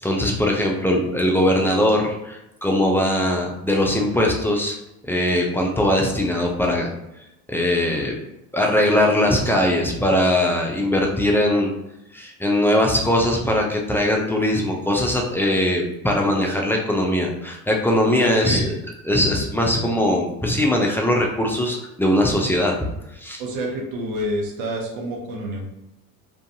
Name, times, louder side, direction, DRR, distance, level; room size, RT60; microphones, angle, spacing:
voice 1, 0.0-4.8 5.0-6.9 7.5-8.1 8.5-11.7 12.1-18.6 19.0-22.7 23.2-23.4, left 1 dB, 5° left, 0 dB, 0.3 m, -20 dB
voice 2, 18.2-18.7 23.4-25.7, right 1 dB, 70° right, -1 dB, 0.9 m, -28 dB
2.6 x 2.3 x 2.6 m, 0.88 s
hypercardioid pair, 75°, 45 cm